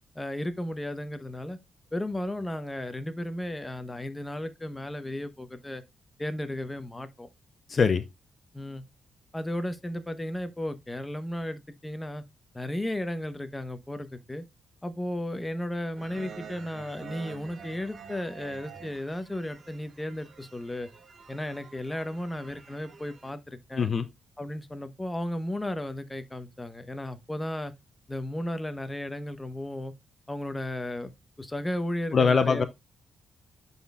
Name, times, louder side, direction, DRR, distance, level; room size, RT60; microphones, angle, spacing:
voice 1, 0.1-1.6 1.9-5.8 6.2-7.3 8.5-8.8 9.3-12.2 12.5-14.4 14.8-20.9 21.3-23.9 24.4-27.7 28.1-29.9 30.3-31.1 31.4-32.7, left 1 dB, 15° left, 0.9 m, -34 dB
voice 2, 7.7-8.0 23.8-24.1 32.1-32.7, left 5 dB, 45° left, 0.5 m, -22 dB
sound 1, 15.9-23.3, right 6 dB, 50° right, 1.0 m, -48 dB
9.9 x 4.1 x 2.3 m
cardioid pair, 70°, 0 cm